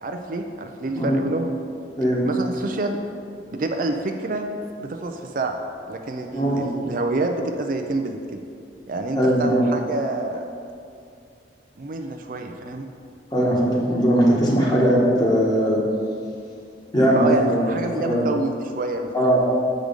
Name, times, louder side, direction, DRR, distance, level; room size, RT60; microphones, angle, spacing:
voice 1, 0.0-1.5 2.2-3.0 3.5-4.5 4.8-5.6 5.9-8.4 8.9-10.4 11.8-12.9 17.1-19.5, right 2 dB, 50° right, 4 dB, 0.4 m, -27 dB
voice 2, 6.3-6.6 9.1-9.6 13.3-15.8 16.9-17.7 18.0-18.2 19.1-19.5, equal, 25° left, -4 dB, 1.4 m, -19 dB
7.6 x 5.0 x 5.2 m, 2.4 s
head